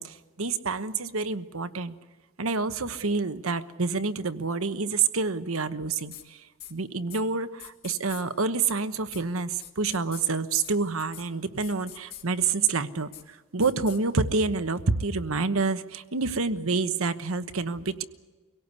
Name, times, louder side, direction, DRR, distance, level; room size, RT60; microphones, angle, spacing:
voice 1, 0.0-2.0 2.4-18.0, right 4 dB, 80° right, 11 dB, 1.2 m, -28 dB
sound 1, 6.1-6.2 6.6-6.7 7.1-7.2 7.6-8.2 8.6-8.7 9.1-9.2 9.6-10.2 10.6-10.7 11.0-11.2 11.6-12.2 12.6-12.7 13.1-13.2 13.6-14.0, left 11 dB, 50° left, 2.3 m, -43 dB
25.0 x 17.5 x 8.3 m, 1.3 s
head